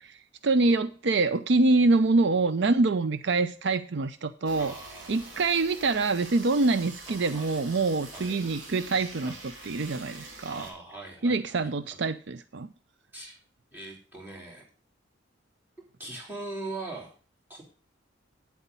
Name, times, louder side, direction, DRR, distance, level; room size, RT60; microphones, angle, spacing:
voice 1, 0.0-4.8 5.1-9.4 9.7-10.7 11.2-12.7, right 3 dB, 65° right, 13 dB, 0.5 m, -25 dB
sound 1, 4.5-10.7, right 2 dB, 80° right, 3.5 m, -45 dB
voice 2, 4.6-5.5 7.1-7.6 8.1-8.4 9.2-9.4 10.4-12.0 13.1-13.3 13.7-14.6 16.0-17.1 17.5-17.6, right 2 dB, 10° right, -3 dB, 3.5 m, -41 dB
9.1 x 8.2 x 5.4 m, 0.39 s
head